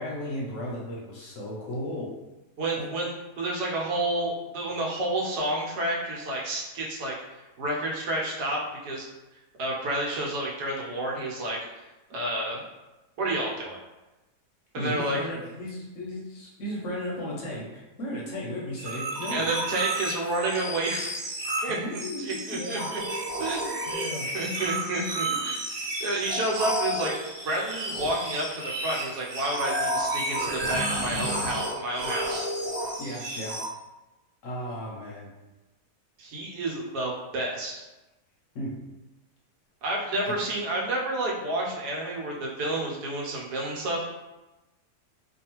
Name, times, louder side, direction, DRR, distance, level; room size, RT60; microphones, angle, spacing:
voice 1, 0.0-2.1 2.8-2.9 14.7-19.5 21.7-22.8 23.9-24.3 33.0-33.5 34.4-35.3 38.5-38.7, equal, 65° left, -4 dB, 0.9 m, -35 dB
voice 2, 2.6-9.1 9.6-12.6 13.2-13.8 14.7-15.2 19.3-21.1 21.6-23.0 23.4-23.8 24.3-25.7 26.0-27.1 27.4-32.5 36.2-37.8 39.8-44.0, right 1 dB, 80° right, -3 dB, 1.2 m, -30 dB
sound 1, 18.8-33.7, right 1 dB, 60° right, 0.9 m, -31 dB
2.6 x 2.4 x 2.9 m, 1.0 s
omnidirectional pair, 1.7 m